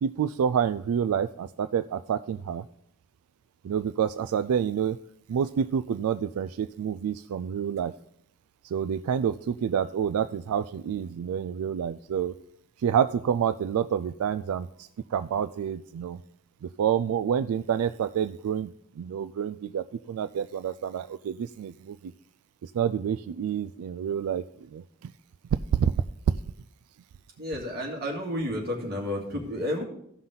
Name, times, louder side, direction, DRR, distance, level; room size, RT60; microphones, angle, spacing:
voice 1, 0.0-2.6 3.6-5.0 5.3-7.9 8.6-12.3 12.8-16.2 16.6-22.1 22.6-24.4 24.7-25.1 25.7-25.9 26.3-26.4, right 8 dB, 80° right, 12 dB, 0.3 m, -28 dB
voice 2, 27.4-29.8, left 1 dB, 45° right, -1 dB, 2.4 m, -31 dB
16.0 x 5.6 x 3.9 m, 0.73 s
head